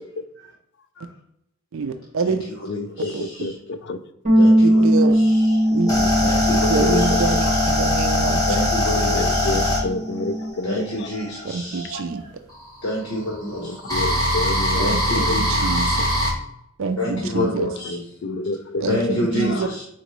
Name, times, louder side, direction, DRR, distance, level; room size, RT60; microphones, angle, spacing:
voice 1, 1.7-2.4 3.1-3.3 4.6-5.2 5.7-5.9 6.2-6.3 6.7-8.4 9.5-9.6 11.4-12.2 14.9-15.0 15.4-16.0 16.8-17.7 18.8-19.7, right 4 dB, 65° right, 8 dB, 0.4 m, -26 dB
voice 2, 2.7-4.0 5.9-6.1 6.5-7.5 9.1-11.1 11.9-12.0 13.5-15.4 15.6-15.8 17.8-19.8, left 2 dB, 55° left, 9 dB, 0.5 m, -30 dB
Bass guitar, 4.2-10.5, equal, 35° right, 1.4 m, -20 dB
voice 3, 4.4-4.8 5.1-5.3 6.2-7.1 8.5-9.1 10.6-12.0 12.8-13.6 14.8-15.4 15.8-16.0 17.0-17.9 18.8-19.8, left 1 dB, 85° left, -3 dB, 1.1 m, -27 dB
sound 1, 5.3-11.5 12.5-16.3, left 1 dB, 20° left, 1.5 m, -21 dB
4.3 x 3.8 x 3.1 m, 0.77 s
head